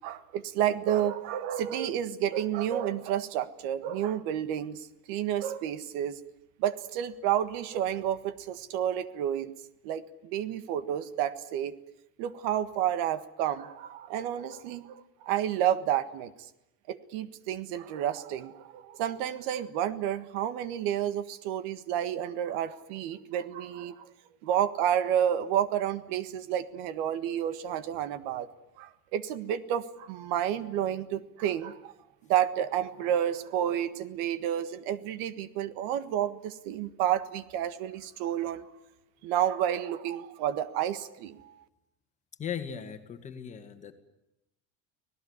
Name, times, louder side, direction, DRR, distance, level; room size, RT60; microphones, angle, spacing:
voice 1, 0.0-6.2 6.6-9.5 9.8-11.7 12.2-16.3 16.9-24.1 24.4-28.5 28.8-31.9 32.3-38.7 39.2-41.6, right 10 dB, 75° right, 13 dB, 1.6 m, -30 dB
voice 2, 42.4-43.9, left 8 dB, 20° left, 7 dB, 1.9 m, -38 dB
26.0 x 18.0 x 9.7 m, 0.89 s
cardioid pair, 175°, 32 cm